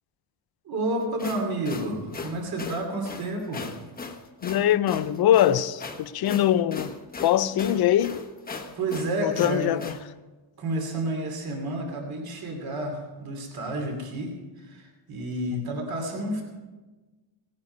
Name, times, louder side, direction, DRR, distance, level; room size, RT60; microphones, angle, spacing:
voice 1, 0.6-3.7 8.8-9.8 10.6-16.4, right 1 dB, 45° right, 2.8 m, -30 dB
sound 1, 1.0-10.0, left 4 dB, 20° left, 0.9 m, -38 dB
voice 2, 4.4-6.9 7.2-8.2 9.2-9.9 15.5-15.7, left 11 dB, 50° left, 0.6 m, -22 dB
17.5 x 9.5 x 5.4 m
cardioid pair, 160°, 49 cm